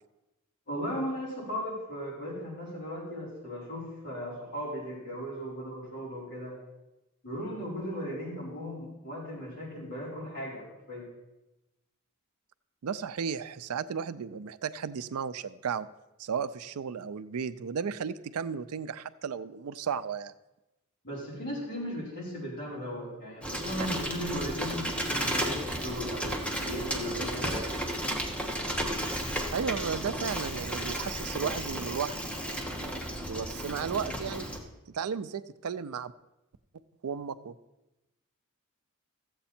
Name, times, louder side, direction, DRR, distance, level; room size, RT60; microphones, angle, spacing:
voice 1, 0.7-6.6 7.2-11.1 21.0-27.8, equal, 50° left, -6 dB, 4.7 m, -37 dB
voice 2, 12.8-15.9 16.2-20.3 29.5-32.2 33.2-34.5 34.9-36.1 37.0-37.5, right 6 dB, 80° right, 14 dB, 0.5 m, -34 dB
Bicycle, 23.4-34.6, equal, 5° left, 1.3 m, -33 dB
14.5 x 8.0 x 4.3 m, 0.99 s
head